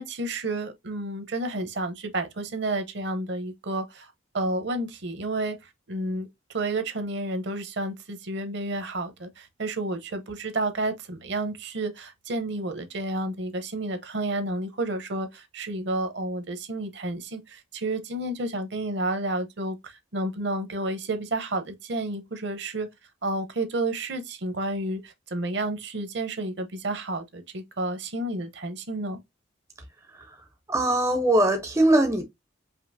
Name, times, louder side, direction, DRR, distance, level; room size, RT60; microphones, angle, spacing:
voice 1, 0.0-5.6 5.9-22.9 23.2-29.2, right 2 dB, 60° right, 0.7 m, -31 dB
voice 2, 30.7-32.2, right 1 dB, 15° right, 0.4 m, -21 dB
5.1 x 2.8 x 2.6 m
head